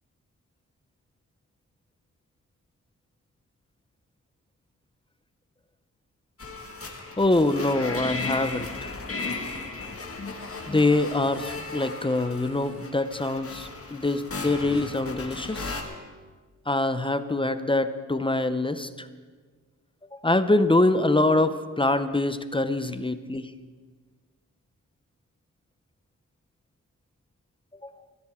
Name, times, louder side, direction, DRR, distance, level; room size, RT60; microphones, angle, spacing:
sound 1, 6.4-15.8, left 3 dB, 45° left, 1.9 m, -36 dB
voice 1, 7.2-8.9 10.7-15.7 16.7-19.1 20.1-23.5 27.8-27.9, left 2 dB, 15° left, 11 dB, 0.6 m, -24 dB
21.5 x 15.0 x 3.7 m, 1.5 s
wide cardioid pair, 125°, 32 cm